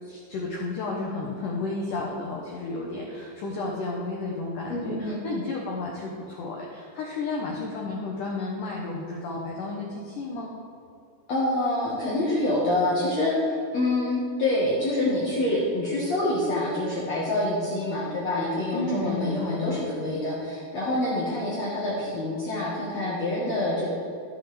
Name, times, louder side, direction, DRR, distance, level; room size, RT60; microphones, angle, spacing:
voice 1, 0.0-10.5 18.7-19.8, left 3 dB, 85° left, -2 dB, 1.8 m, -32 dB
voice 2, 4.7-5.2 11.3-23.9, left 1 dB, 65° left, -7 dB, 1.7 m, -26 dB
12.5 x 7.5 x 3.3 m, 2.5 s
omnidirectional pair, 5.0 m